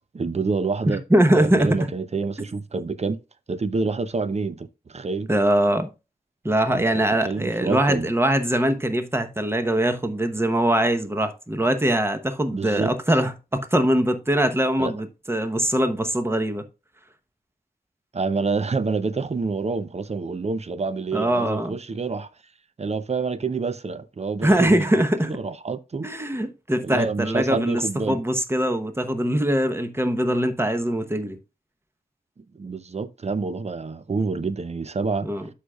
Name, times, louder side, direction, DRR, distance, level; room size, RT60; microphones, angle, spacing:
voice 1, 0.0-1.0 1.3-3.2 3.5-5.3 6.7-8.1 12.5-12.9 14.8-14.9 18.1-22.3 22.8-26.1 26.8-28.2 32.4-35.3, right 4 dB, 45° right, 0.6 m, -27 dB
voice 2, 0.9-1.9 5.3-5.9 6.4-16.6 21.1-21.8 24.4-25.3 26.0-31.4 35.2-35.5, right 1 dB, 15° right, 0.9 m, -22 dB
13.0 x 5.0 x 2.3 m
wide cardioid pair, 80°, 16 cm